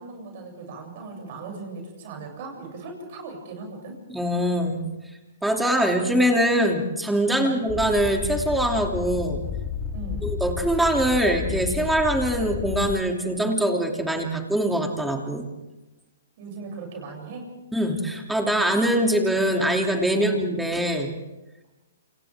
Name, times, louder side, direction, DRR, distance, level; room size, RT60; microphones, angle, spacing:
voice 1, 0.0-4.0 7.3-7.6 9.9-10.3 16.4-17.5 20.1-20.4, right 3 dB, 50° right, 1 dB, 7.7 m, -38 dB
voice 2, 4.1-4.8 5.4-9.4 10.2-15.5 17.7-21.1, right 1 dB, 5° right, 2 dB, 2.9 m, -23 dB
sound 1, 7.7-12.9, left 6 dB, 25° left, 2.2 m, -32 dB
28.5 x 28.0 x 3.7 m, 1.0 s
hypercardioid pair, 125°, 0 cm